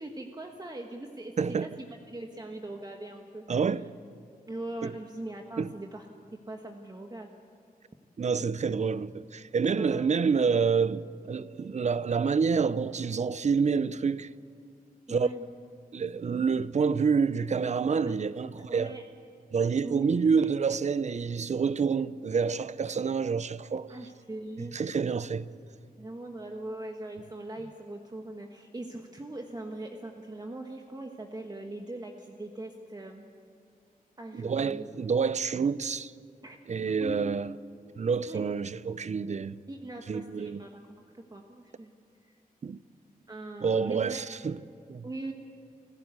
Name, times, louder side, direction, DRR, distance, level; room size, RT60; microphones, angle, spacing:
voice 1, 0.0-3.5 4.5-6.1 6.5-7.3 9.7-10.2 15.1-15.4 18.0-18.1 18.7-19.0 19.8-20.5 23.9-24.9 26.0-33.2 34.2-34.9 36.4-37.4 38.2-38.4 39.7-41.0 41.3-41.9 43.3-44.2 45.0-45.3, right 2 dB, 25° right, 1.3 m, -40 dB
voice 2, 1.4-1.7 3.5-3.9 4.8-4.9 5.6-5.7 8.2-14.3 15.1-15.3 15.9-18.9 19.5-23.9 24.6-25.5 34.3-36.1 36.7-37.5 38.0-39.6 40.1-40.6 42.6-42.8 43.6-44.6 44.9-45.1, right 5 dB, 50° right, 0.6 m, -28 dB
28.0 x 15.0 x 8.2 m
wide cardioid pair, 90°, 15 cm